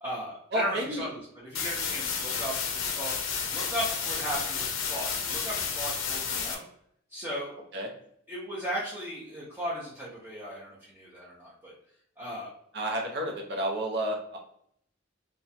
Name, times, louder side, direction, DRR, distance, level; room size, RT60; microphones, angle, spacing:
voice 1, 0.0-2.5 2.8-3.1 3.5-6.6 7.1-7.5 8.3-11.7 12.2-12.5, equal, 10° right, -9 dB, 0.6 m, -36 dB
voice 2, 0.5-1.1 7.7-7.9 12.7-14.4, equal, 55° right, 1 dB, 0.7 m, -30 dB
sound 1, 1.5-6.5, left 6 dB, 90° left, 0.5 m, -31 dB
3.0 x 2.2 x 2.7 m, 0.69 s
head